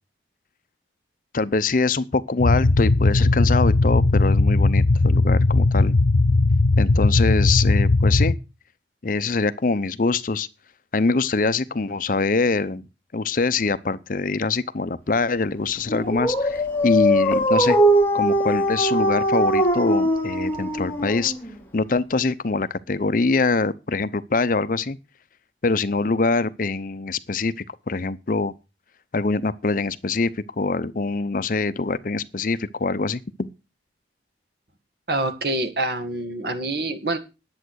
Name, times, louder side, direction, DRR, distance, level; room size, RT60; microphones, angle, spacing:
voice 1, 1.3-6.0 6.8-8.4 9.0-10.5 10.9-12.8 13.1-17.8 18.1-21.3 21.7-25.0 25.6-28.5 29.1-33.5, left 3 dB, 45° left, 0.6 m, -24 dB
sound 1, 2.4-8.4, left 2 dB, 85° left, 0.8 m, -18 dB
Dog, 15.9-21.5, equal, 10° left, 2.0 m, -21 dB
voice 2, 35.1-37.2, right 2 dB, 60° right, 1.8 m, -26 dB
10.5 x 7.8 x 6.3 m
head